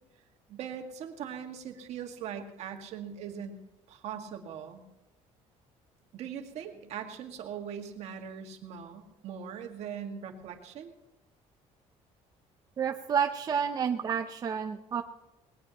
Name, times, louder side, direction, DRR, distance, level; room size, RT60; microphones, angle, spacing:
voice 1, 0.5-3.5 3.9-4.8 6.1-10.9, right 8 dB, 60° right, 4 dB, 1.9 m, -40 dB
voice 2, 12.8-15.0, right 7 dB, 30° right, 5 dB, 0.6 m, -30 dB
19.5 x 18.5 x 3.0 m, 0.97 s
cardioid pair, 150°, 12 cm